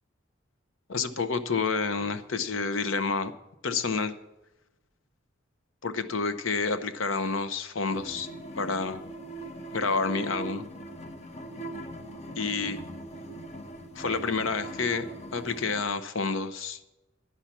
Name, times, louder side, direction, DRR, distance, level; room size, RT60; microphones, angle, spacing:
voice 1, 0.9-3.3 3.6-4.1 5.8-8.3 8.6-9.0 9.7-10.6 12.4-12.8 13.9-16.8, left 4 dB, 90° left, 11 dB, 0.8 m, -29 dB
sound 1, 7.9-15.8, right 1 dB, 35° left, 0.9 m, -40 dB
11.0 x 5.9 x 8.2 m, 0.95 s
head